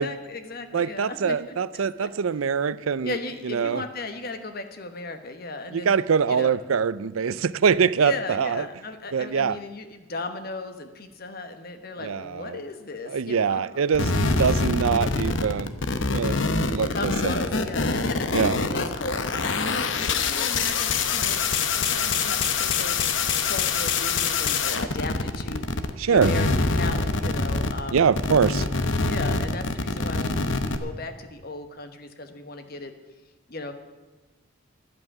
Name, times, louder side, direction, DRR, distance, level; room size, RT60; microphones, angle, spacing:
voice 1, 0.0-2.1 3.0-5.9 6.3-6.5 8.0-13.8 14.2-14.3 16.9-23.0 23.4-25.6 26.1-28.0 29.1-32.9 33.5-33.7, left 2 dB, 45° left, 8 dB, 1.2 m, -36 dB
voice 2, 0.7-3.2 3.4-3.8 5.7-8.7 9.1-9.6 12.0-12.6 13.1-15.8 16.1-16.4 16.7-17.3 18.3-18.6 26.0-26.3 27.9-28.7, right 6 dB, 85° right, 17 dB, 0.5 m, -23 dB
sound 1, 13.9-25.9 26.2-30.8, left 4 dB, 65° left, 0.9 m, -25 dB
11.5 x 7.8 x 9.7 m, 1.3 s
head